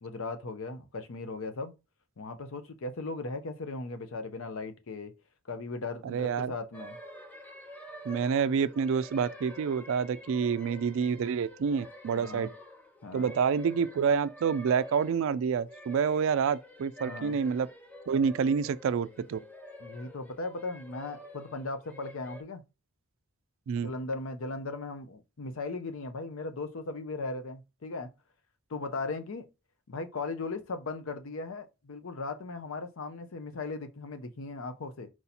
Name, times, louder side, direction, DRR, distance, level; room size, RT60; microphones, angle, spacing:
voice 1, 0.0-1.7 2.2-5.1 5.5-7.0 12.1-12.5 13.0-13.3 17.0-17.4 19.8-22.6 23.8-28.1 28.7-29.5 29.9-35.1, left 3 dB, 65° left, 0.6 m, -37 dB
voice 2, 6.0-6.5 8.1-12.5 13.1-17.7 18.1-19.4 23.7-23.9, right 6 dB, 65° right, 0.3 m, -28 dB
sound 1, 6.7-22.4, equal, 10° left, 0.6 m, -48 dB
4.6 x 2.8 x 4.1 m
head